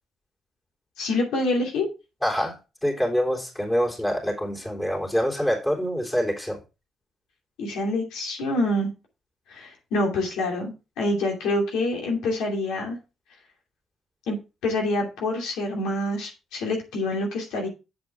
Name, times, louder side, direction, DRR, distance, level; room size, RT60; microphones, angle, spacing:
voice 1, 1.0-1.9 7.6-8.9 9.5-13.0 14.3-14.4 14.6-17.7, left 2 dB, 90° left, 0 dB, 2.8 m, -26 dB
voice 2, 2.2-6.6, equal, 10° left, -1 dB, 3.4 m, -26 dB
8.0 x 7.6 x 3.5 m, 0.29 s
cardioid pair, 90°, 0 cm